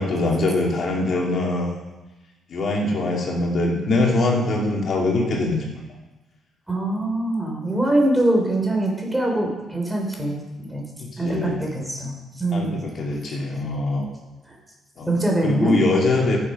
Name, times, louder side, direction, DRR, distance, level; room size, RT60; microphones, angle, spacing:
voice 1, 0.0-1.7 2.5-5.6 11.0-11.6 12.5-14.1 15.0-15.1 15.4-16.4, left 2 dB, 55° left, -2 dB, 2.8 m, -23 dB
voice 2, 6.7-10.9 11.2-12.8 13.9-14.0 15.1-15.7, right 1 dB, 10° right, 0 dB, 3.5 m, -23 dB
13.5 x 7.2 x 5.6 m, 1.1 s
cardioid pair, 90°, 0 cm